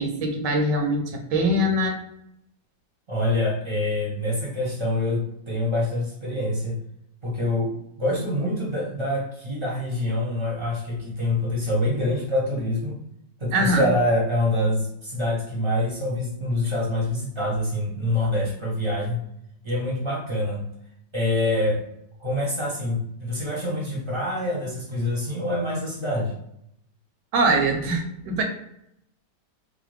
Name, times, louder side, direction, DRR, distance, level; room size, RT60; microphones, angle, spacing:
voice 1, 0.0-2.0 13.5-13.8 27.3-28.4, right 1 dB, 80° right, 3 dB, 1.3 m, -23 dB
voice 2, 3.1-6.8 7.2-13.0 13.4-19.2 19.6-20.7 21.1-21.8 22.2-26.3, left 1 dB, 30° right, -4 dB, 0.6 m, -25 dB
3.2 x 2.0 x 3.2 m, 0.77 s
omnidirectional pair, 1.8 m